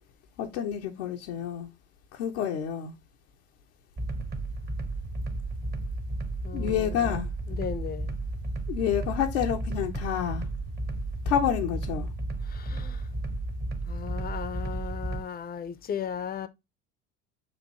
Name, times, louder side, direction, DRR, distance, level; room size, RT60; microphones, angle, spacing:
voice 1, 0.4-1.7 2.1-2.9 6.5-7.3 8.7-10.5 11.3-12.1, left 9 dB, 65° left, 0.8 m, -28 dB
sound 1, 4.0-15.2, right 2 dB, 25° right, 1.0 m, -33 dB
voice 2, 6.4-8.2 12.4-13.1 13.9-16.5, left 8 dB, 25° left, 0.6 m, -36 dB
7.1 x 2.5 x 3.0 m
figure-of-eight pair, 65°, 37 cm